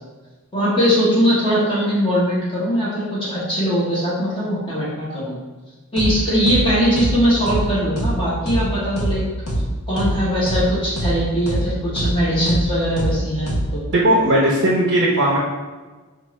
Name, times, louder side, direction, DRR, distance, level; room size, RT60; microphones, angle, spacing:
voice 1, 0.5-5.3 5.9-9.2 9.9-13.8, equal, 25° left, -8 dB, 0.9 m, -20 dB
sound 1, 6.0-6.1 6.5-6.6 7.0-7.1 7.5-7.6 8.0-8.1 8.5-8.6 9.0-9.1 9.5-9.6 10.0-10.1 10.5-10.6 11.0-11.1 11.5-11.6 12.0-12.1 12.5-12.6 13.0-13.1 13.5-13.6, right 1 dB, 75° left, 0.8 m, -22 dB
voice 2, 13.9-15.4, right 1 dB, 50° right, -5 dB, 0.6 m, -17 dB
4.5 x 2.4 x 3.1 m, 1.3 s
head